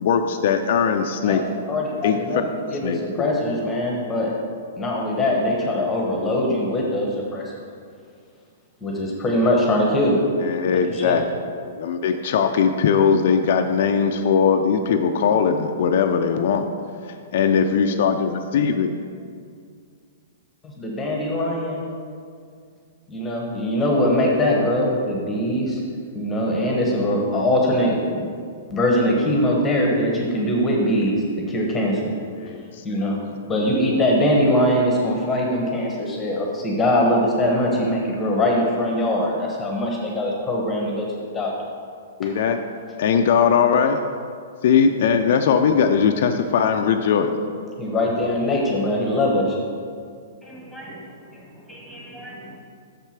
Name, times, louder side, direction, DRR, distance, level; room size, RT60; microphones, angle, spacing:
voice 1, 0.0-1.4 2.0-2.2 2.8-3.3 10.4-11.2 11.8-16.7 17.3-18.9 32.4-32.8 42.2-42.6 43.0-44.0 44.6-47.3, left 6 dB, 60° left, 5 dB, 0.4 m, -20 dB
voice 2, 1.2-2.4 2.7-4.3 4.8-7.5 8.8-10.2 10.7-11.2 20.6-21.8 23.1-25.8 26.1-28.3 28.7-32.1 32.8-33.2 33.5-41.1 41.3-41.7 47.8-49.6, left 1 dB, 15° left, -1 dB, 1.0 m, -22 dB
voice 3, 50.4-52.6, right 1 dB, 5° right, -5 dB, 1.9 m, -41 dB
6.6 x 4.6 x 5.8 m, 2.2 s
hypercardioid pair, 140°, 0 cm